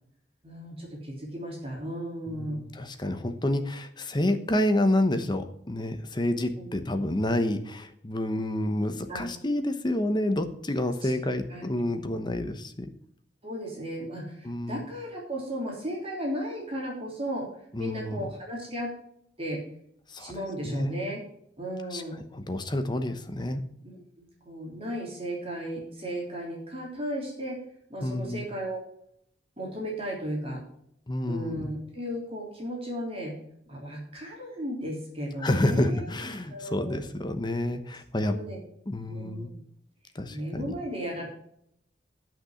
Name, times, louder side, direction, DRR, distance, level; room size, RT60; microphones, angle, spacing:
voice 1, 0.4-2.6 6.6-6.7 9.1-9.3 10.8-11.1 11.5-11.9 13.4-17.5 17.8-18.9 19.4-19.6 20.2-21.2 21.6-22.2 23.8-23.9 24.2-27.6 27.9-28.8 29.6-30.6 31.2-33.3 33.7-36.1 36.5-37.0 38.3-38.6 39.1-39.4 40.3-41.3, equal, 35° right, -2 dB, 3.3 m, -35 dB
voice 2, 2.3-12.9 14.4-14.8 17.7-18.3 20.1-20.3 20.6-21.0 21.9-23.6 28.0-28.5 31.1-31.7 35.4-38.4 38.9-39.5 40.1-40.7, left 1 dB, 25° left, 8 dB, 1.0 m, -29 dB
10.5 x 6.1 x 6.4 m, 0.69 s
head